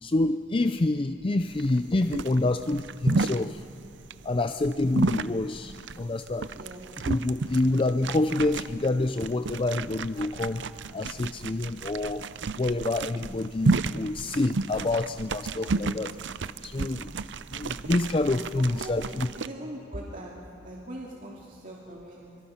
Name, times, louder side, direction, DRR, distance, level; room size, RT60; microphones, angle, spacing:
voice 1, 0.0-3.6 4.2-6.5 7.0-10.6 10.9-12.2 12.6-16.1 16.6-17.1 17.5-19.3, left 2 dB, 30° left, 9 dB, 0.5 m, -27 dB
sound 1, 1.5-19.5, right 3 dB, 70° right, 0.6 m, -32 dB
voice 2, 18.8-20.3 20.6-22.4, right 1 dB, 45° right, -4 dB, 2.5 m, -41 dB
25.5 x 24.0 x 5.8 m, 2.5 s
head